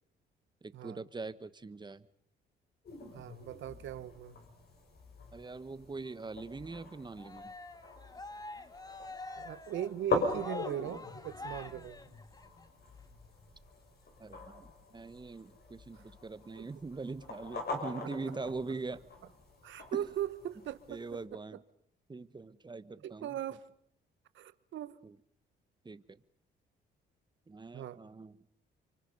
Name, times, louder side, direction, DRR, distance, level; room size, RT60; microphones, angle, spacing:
voice 1, 0.6-2.0 5.3-7.5 14.2-19.1 19.9-20.1 20.9-21.6 22.1-23.4 25.0-25.2 25.8-26.2 27.5-28.4, right 3 dB, 20° right, 1.3 m, -42 dB
sound 1, 2.8-21.2, left 3 dB, 55° left, 6.8 m, -42 dB
voice 2, 3.1-4.3 9.4-12.0 15.9-16.0 16.6-16.7 19.6-21.0 23.0-23.7 24.3-25.0 27.7-28.0, right 11 dB, 75° right, 1.3 m, -39 dB
Cheering, 7.2-12.6, left 2 dB, 20° left, 1.7 m, -46 dB
29.5 x 24.5 x 5.5 m
cardioid pair, 90°, 20 cm